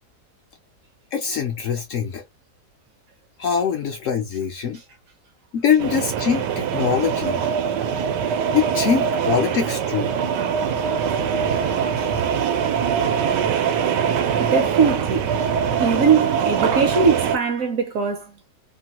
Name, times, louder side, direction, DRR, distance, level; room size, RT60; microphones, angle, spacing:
voice 1, 1.1-2.2 3.4-4.8 5.5-7.4 8.5-10.2, left 7 dB, 70° left, 0.7 m, -23 dB
sound 1, 5.8-17.4, right 7 dB, 90° right, 1.2 m, -23 dB
voice 2, 10.8-11.2 11.5-11.6 12.0-12.1 14.4-15.3 15.8-18.3, right 5 dB, 65° right, 0.9 m, -21 dB
3.1 x 2.2 x 2.8 m
omnidirectional pair, 1.8 m